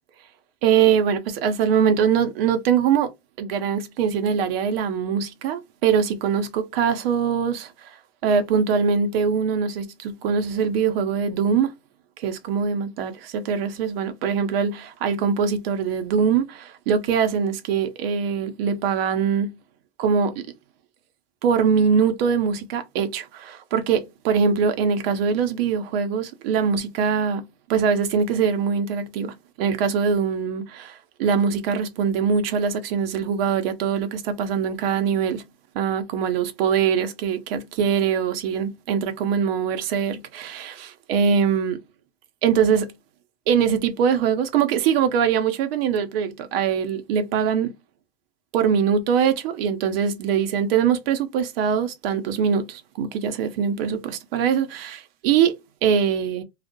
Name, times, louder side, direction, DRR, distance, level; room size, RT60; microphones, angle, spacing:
voice 1, 0.6-3.1 3.4-7.9 8.2-11.7 12.2-19.5 20.0-20.5 21.4-27.4 27.7-35.4 35.7-41.8 42.4-42.9 43.5-47.7 48.5-56.4, right 7 dB, 65° right, 0.7 m, -22 dB
2.3 x 2.1 x 2.7 m
hypercardioid pair, 95°, 32 cm